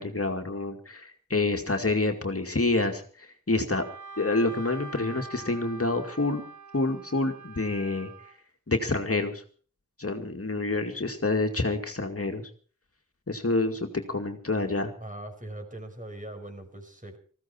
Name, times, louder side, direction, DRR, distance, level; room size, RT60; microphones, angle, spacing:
voice 1, 0.0-3.8 4.2-6.4 6.7-8.1 8.7-9.4 10.0-12.5 13.3-14.9, left 2 dB, 45° left, 4 dB, 2.3 m, -28 dB
Wind instrument woodwind instrument, 3.7-8.3, right 3 dB, 65° right, 3.6 m, -44 dB
voice 2, 15.0-17.2, right 1 dB, 25° right, 5 dB, 5.4 m, -41 dB
19.5 x 15.5 x 4.5 m, 0.43 s
wide cardioid pair, 50°, 32 cm